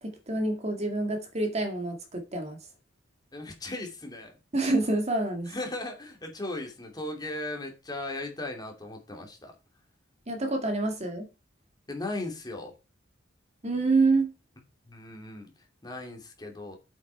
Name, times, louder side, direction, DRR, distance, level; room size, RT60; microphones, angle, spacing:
voice 1, 0.0-2.6 4.5-5.5 10.3-11.3 13.6-14.3, right 2 dB, 35° right, 4 dB, 2.0 m, -27 dB
voice 2, 3.3-4.4 5.4-9.5 11.9-12.7 14.8-16.8, left 2 dB, 20° left, 2 dB, 2.7 m, -37 dB
8.3 x 8.1 x 4.6 m, 0.29 s
head